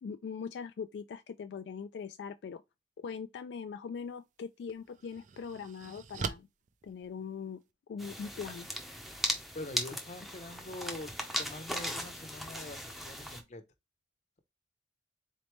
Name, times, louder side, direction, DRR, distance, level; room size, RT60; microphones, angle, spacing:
voice 1, 0.0-2.6 3.0-6.5 6.8-7.6 7.9-8.7, left 6 dB, 75° left, 0.3 m, -41 dB
sound 1, 4.0-4.1 4.7-7.7, right 5 dB, 45° right, 0.4 m, -42 dB
sound 2, 8.0-13.4, equal, ahead, 0.6 m, -38 dB
voice 2, 9.5-11.1 11.4-13.6, left 2 dB, 40° left, 0.7 m, -44 dB
4.0 x 3.2 x 3.0 m
head